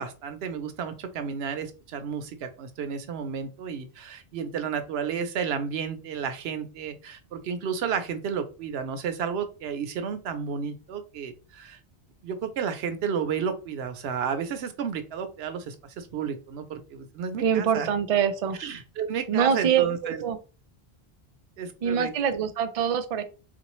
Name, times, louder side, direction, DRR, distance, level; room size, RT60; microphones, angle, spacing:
voice 1, 0.0-11.8 12.2-17.9 18.6-20.2 21.6-22.1, right 7 dB, 80° right, 9 dB, 0.9 m, -32 dB
voice 2, 17.4-18.6 19.3-20.4 21.8-23.2, right 8 dB, 55° right, 9 dB, 0.4 m, -24 dB
3.7 x 2.5 x 3.0 m, 0.34 s
omnidirectional pair, 1.1 m